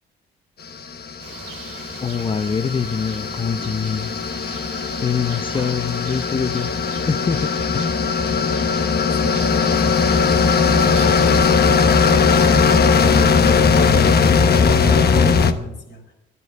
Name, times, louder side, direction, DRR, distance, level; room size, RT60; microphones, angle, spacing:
sound 1, 0.8-15.5, left 5 dB, 55° left, 1.1 m, -18 dB
sound 2, 1.2-11.6, right 7 dB, 80° right, 1.9 m, -40 dB
voice 1, 2.0-4.1 5.0-6.7 7.1-8.0, left 6 dB, 25° left, 10 dB, 0.5 m, -24 dB
voice 2, 8.8-8.9, left 1 dB, 80° left, -2 dB, 4.5 m, -40 dB
11.0 x 10.5 x 7.9 m, 0.90 s
cardioid pair, 90°, 20 cm